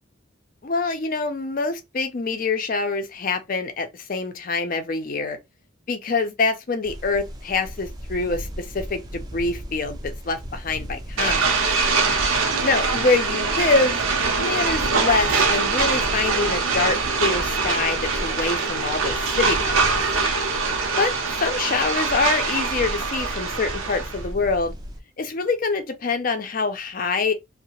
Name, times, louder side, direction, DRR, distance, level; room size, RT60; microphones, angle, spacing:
voice 1, 0.6-5.4 5.9-11.5 12.6-14.1 14.4-19.7 21.0-21.1 21.4-24.7 25.2-27.3, left 4 dB, 40° left, 0.5 m, -25 dB
sound 1, 6.8-25.0, equal, 20° right, 0.4 m, -36 dB
sound 2, 11.2-24.2, right 4 dB, 80° right, 0.7 m, -23 dB
2.8 x 2.0 x 2.8 m
head